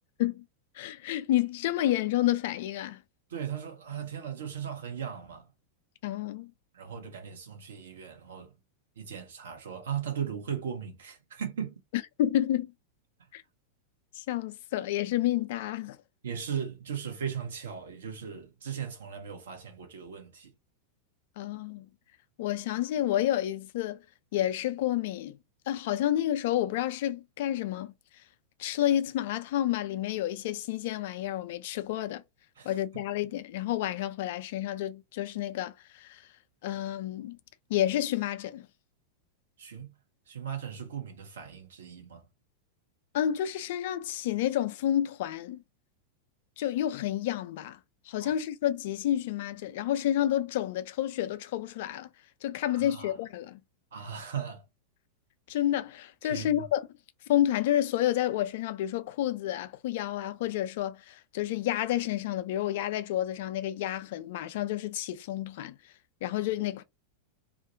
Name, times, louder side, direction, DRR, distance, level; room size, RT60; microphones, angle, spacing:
voice 1, 0.7-3.0 6.0-6.5 12.2-12.7 13.3-13.4 14.1-16.0 21.4-21.9 22.4-24.0 24.3-25.4 25.7-27.9 28.6-32.2 32.6-36.2 36.6-37.4 37.7-38.7 43.1-45.6 46.6-47.8 48.1-52.1 52.4-53.6 55.5-56.9 57.3-65.8 66.2-66.8, left 12 dB, 50° left, 0.3 m, -30 dB
voice 2, 3.3-5.5 6.7-8.5 9.0-11.8 16.2-20.5 32.6-32.7 39.6-39.9 40.3-42.2 48.2-48.3 52.7-53.1 53.9-54.6 56.2-56.5, right 8 dB, 65° right, 0.8 m, -37 dB
2.4 x 2.0 x 2.6 m
figure-of-eight pair, 90°, 0 cm